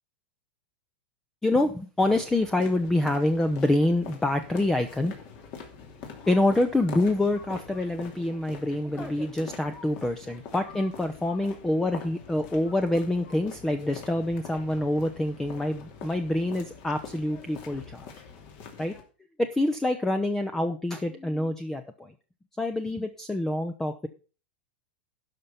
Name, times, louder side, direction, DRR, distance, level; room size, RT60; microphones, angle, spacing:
voice 1, 1.4-5.1 6.3-18.1 18.8-19.0 19.4-22.1 22.6-24.1, left 1 dB, 5° left, 9 dB, 0.7 m, -26 dB
sound 1, 2.0-19.0, left 6 dB, 50° left, 2.7 m, -44 dB
12.0 x 5.5 x 5.8 m, 0.36 s
supercardioid pair, 130°, 5 cm